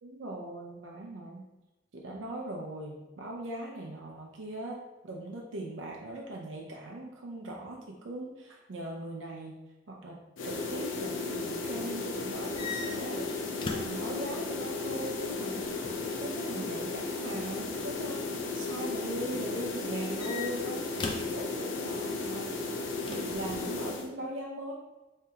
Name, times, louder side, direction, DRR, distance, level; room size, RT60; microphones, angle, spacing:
voice 1, 0.0-1.5 1.9-9.6 9.9-10.2 10.4-15.7 16.1-18.3 18.5-20.9 21.3-22.6 23.1-24.7, right 1 dB, 85° right, -1 dB, 0.5 m, -40 dB
sound 1, 10.4-24.1, left 3 dB, 85° left, 0.5 m, -35 dB
sound 2, 12.4-14.1 15.4-16.1 17.6-18.0 19.8-21.4 23.1-23.7, left 4 dB, 25° left, 0.3 m, -40 dB
3.3 x 2.8 x 3.5 m, 1.0 s
head